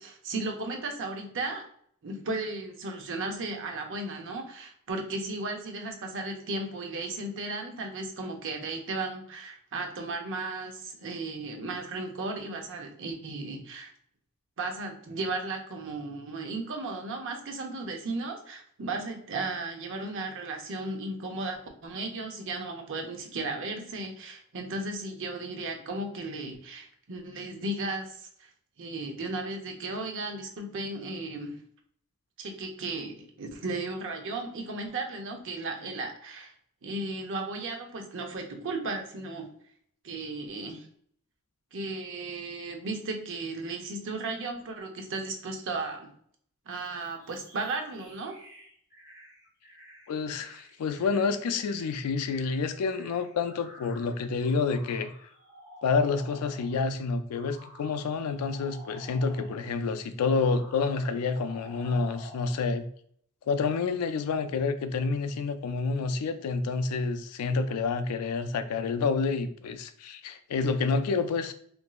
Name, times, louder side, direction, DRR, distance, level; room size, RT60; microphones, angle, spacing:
voice 1, 0.0-1.6 2.0-13.9 14.6-28.5 28.8-31.6 32.4-36.5 36.8-39.5 40.0-40.9 41.7-46.1 46.7-48.4, right 2 dB, 60° right, 3 dB, 0.6 m, -35 dB
sound 1, 46.7-56.9 57.3-59.8 60.2-62.7, equal, 15° right, 0.8 m, -51 dB
voice 2, 50.1-55.1 55.8-62.9 63.5-71.5, left 4 dB, 80° left, 10 dB, 0.3 m, -28 dB
2.9 x 2.6 x 2.3 m, 0.64 s
head